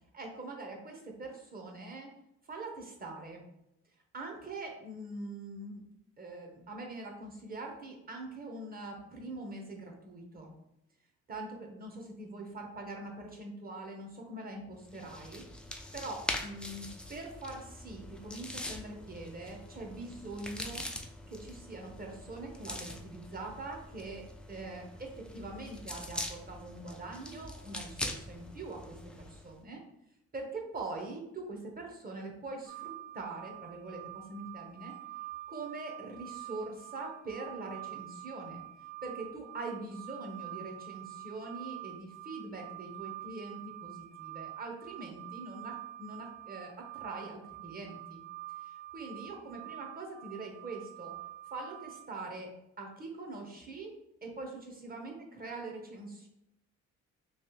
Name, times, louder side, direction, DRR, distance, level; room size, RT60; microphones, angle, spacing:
voice 1, 0.1-2.1 2.5-3.4 4.1-5.8 6.2-10.5 11.3-15.4 15.9-20.8 21.3-29.8 30.3-34.9 35.5-38.6 39.0-48.2 48.6-51.1 51.5-52.5 52.8-56.3, right 2 dB, 30° right, 1 dB, 0.9 m, -43 dB
sound 1, 14.9-29.5, left 1 dB, 5° left, 0.3 m, -43 dB
sound 2, 32.7-52.1, right 17 dB, 85° right, 0.5 m, -46 dB
3.2 x 2.9 x 3.0 m, 0.83 s
cardioid pair, 90°, 30 cm